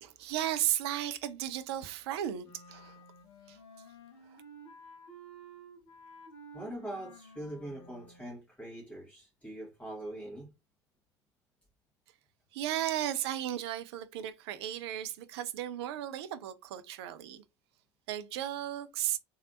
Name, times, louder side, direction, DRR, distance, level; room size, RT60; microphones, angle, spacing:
voice 1, 0.0-3.0 3.5-3.6 12.5-17.4 18.1-19.2, right 11 dB, 60° right, 0.4 m, -35 dB
Wind instrument woodwind instrument, 2.4-8.3, right 1 dB, 60° left, 0.9 m, -53 dB
voice 2, 6.5-10.5, right 1 dB, 10° left, 1.4 m, -42 dB
3.2 x 2.7 x 2.4 m
figure-of-eight pair, 65°, 15 cm